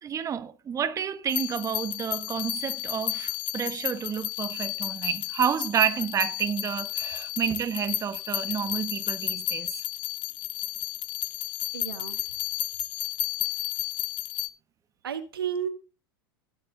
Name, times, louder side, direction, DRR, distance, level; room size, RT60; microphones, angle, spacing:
voice 1, 0.0-9.7, right 8 dB, 25° right, 1.3 m, -30 dB
sound 1, 1.3-14.5, left 17 dB, 45° left, 0.9 m, -32 dB
voice 2, 11.7-12.2 15.0-15.7, right 8 dB, 80° right, 1.7 m, -32 dB
18.0 x 6.5 x 3.9 m
hypercardioid pair, 90°, 12 cm